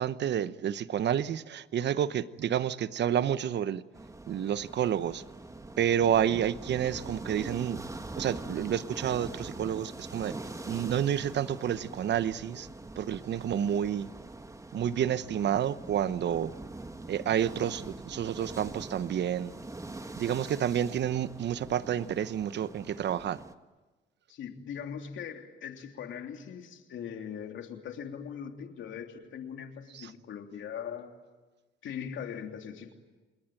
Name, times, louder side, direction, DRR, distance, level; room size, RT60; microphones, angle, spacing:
voice 1, 0.0-3.8 4.3-5.2 5.8-7.8 8.2-10.3 10.7-12.7 13.0-14.1 14.7-16.5 17.1-19.5 20.2-23.4 29.9-30.1, right 9 dB, 60° right, 15 dB, 1.0 m, -29 dB
sound 1, 3.9-23.5, right 2 dB, 15° right, 1.5 m, -43 dB
voice 2, 24.3-31.1 31.8-32.9, left 8 dB, 75° left, 4 dB, 3.1 m, -40 dB
28.0 x 21.0 x 9.0 m, 1.2 s
cardioid pair, 90°, 20 cm